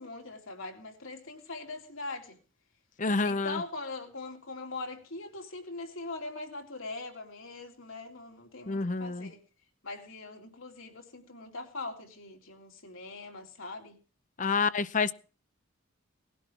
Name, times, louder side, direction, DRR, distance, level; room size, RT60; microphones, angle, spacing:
voice 1, 0.0-2.4 3.2-9.4 9.8-14.0, left 3 dB, 75° left, 3.4 m, -41 dB
voice 2, 3.0-3.6 8.7-9.3 14.4-15.1, left 4 dB, 40° left, 0.7 m, -28 dB
19.0 x 12.0 x 4.6 m
head